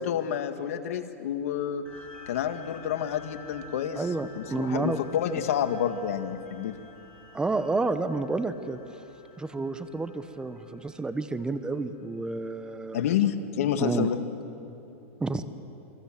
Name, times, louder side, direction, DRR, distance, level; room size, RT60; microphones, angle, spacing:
voice 1, 0.1-1.8 2.3-4.1 4.4-6.7 12.9-14.2, left 9 dB, 75° left, 8 dB, 1.8 m, -29 dB
sound 1, 1.9-12.7, left 3 dB, 15° left, 6.7 m, -51 dB
voice 2, 3.9-5.0 7.3-8.8 9.4-13.1 13.8-14.1 15.2-15.4, right 3 dB, 10° right, 11 dB, 1.2 m, -30 dB
28.5 x 23.5 x 7.5 m, 2.9 s
hypercardioid pair, 125°, 8 cm